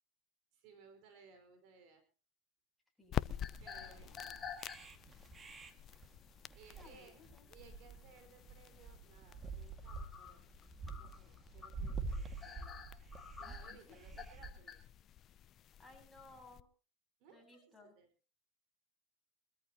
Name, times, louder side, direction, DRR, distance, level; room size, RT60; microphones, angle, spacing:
voice 1, 0.5-2.0 3.6-4.4 6.6-7.2 7.5-10.4 10.8-12.8 13.4-14.8 17.2-18.1, right 5 dB, 60° right, 7 dB, 4.9 m, -62 dB
sound 1, 3.0-16.6, left 11 dB, 40° left, 0.6 m, -48 dB
voice 2, 3.0-3.4 3.9-4.1 6.8-7.4 13.4-14.0 15.8-16.7 17.3-17.9, left 3 dB, 5° left, 0 dB, 7.7 m, -60 dB
sound 2, 3.2-14.5, right 4 dB, 20° right, 2.0 m, -47 dB
sound 3, 3.4-5.2 5.7-5.9 7.4-7.5 7.9-8.0 9.9-14.8, left 6 dB, 20° left, 3.9 m, -49 dB
23.5 x 14.0 x 2.9 m, 0.36 s
supercardioid pair, 120°, 0 cm